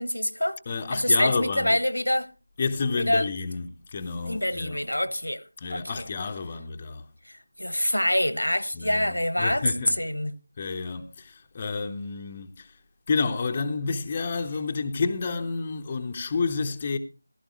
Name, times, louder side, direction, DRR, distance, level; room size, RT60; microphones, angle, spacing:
voice 1, 0.0-0.6 0.9-2.3 3.0-3.3 4.2-5.4 5.7-6.1 7.3-9.7 10.0-10.3, left 1 dB, 85° left, 1.2 m, -26 dB
voice 2, 0.7-1.8 2.6-4.8 5.6-7.0 8.8-10.0 10.6-12.7 13.1-17.0, left 4 dB, 20° left, 0.7 m, -30 dB
15.5 x 13.5 x 3.0 m
figure-of-eight pair, 165°, 0 cm